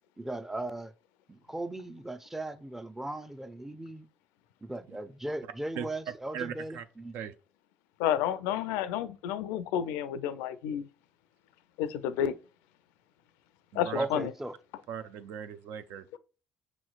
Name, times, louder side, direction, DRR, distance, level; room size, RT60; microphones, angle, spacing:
voice 1, 0.2-0.9 1.3-4.1 4.6-7.1 14.0-14.6, right 1 dB, 10° right, 0.5 m, -37 dB
voice 2, 5.7-6.9 7.1-7.3 13.7-14.1 14.9-16.1, right 8 dB, 80° right, 0.5 m, -39 dB
voice 3, 8.0-10.9 11.8-12.3 13.8-14.3, left 10 dB, 85° left, 0.4 m, -30 dB
5.9 x 3.0 x 2.4 m
supercardioid pair, 75°, 4 cm